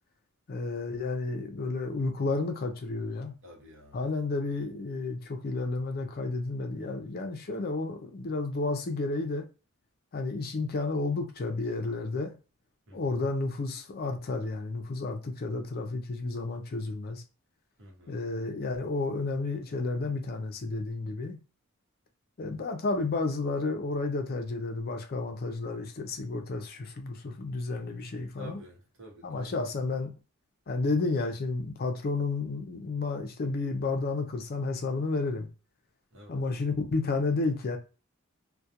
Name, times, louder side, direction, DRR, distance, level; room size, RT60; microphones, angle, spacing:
voice 1, 0.5-3.3 3.9-9.5 10.1-12.3 12.9-17.2 18.1-21.4 22.4-28.6 29.2-30.1 30.7-35.5 36.3-37.8, left 3 dB, 45° left, 0.5 m, -31 dB
voice 2, 3.4-4.0 12.9-13.2 17.8-18.2 28.4-29.6 36.1-36.4, equal, 60° right, 0.9 m, -49 dB
2.2 x 2.2 x 2.7 m
head